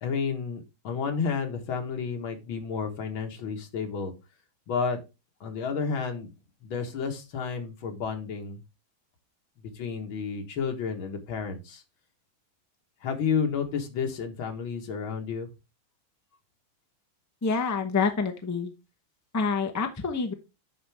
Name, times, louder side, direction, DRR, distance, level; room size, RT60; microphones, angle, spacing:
voice 1, 0.0-4.1 4.7-5.0 5.4-6.3 6.6-8.6 9.8-11.8 13.0-15.5, left 6 dB, 80° left, 4 dB, 2.2 m, -31 dB
voice 2, 17.4-18.7 19.3-20.3, left 5 dB, 25° left, 6 dB, 0.3 m, -27 dB
10.5 x 4.5 x 3.4 m, 0.27 s
omnidirectional pair, 2.2 m